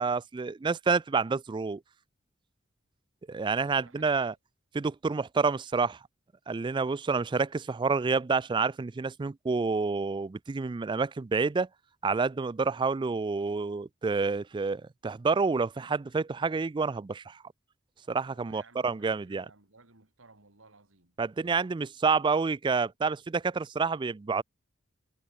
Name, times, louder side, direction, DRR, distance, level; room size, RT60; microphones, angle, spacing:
voice 1, 0.0-1.8 3.3-4.3 4.7-6.0 6.5-11.7 12.0-17.4 18.1-19.4 21.2-24.4, right 4 dB, 25° right, 0.3 m, -28 dB
voice 2, 3.6-4.4 18.3-21.2, right 3 dB, 85° right, 2.9 m, -58 dB
head